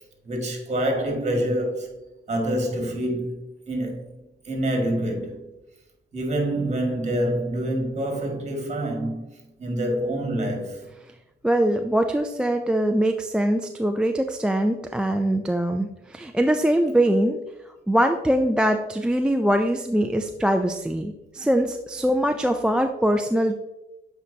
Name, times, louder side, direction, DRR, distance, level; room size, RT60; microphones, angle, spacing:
voice 1, 0.2-1.9 2.3-3.4 3.7-4.1 4.5-5.5 6.1-10.9, right 1 dB, 35° right, 1.9 m, -26 dB
voice 2, 11.4-17.4 17.9-23.6, right 1 dB, 5° right, 0.3 m, -22 dB
8.2 x 4.5 x 2.7 m
cardioid pair, 90°, 20 cm